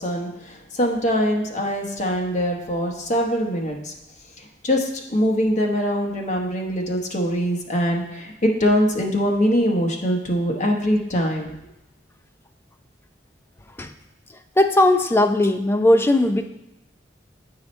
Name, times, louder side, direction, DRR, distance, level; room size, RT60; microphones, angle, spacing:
voice 1, 0.0-3.9 4.4-11.6, equal, 40° left, 1 dB, 1.0 m, -23 dB
voice 2, 14.6-16.5, left 1 dB, 10° left, 7 dB, 0.3 m, -18 dB
7.9 x 4.8 x 4.2 m, 0.91 s
head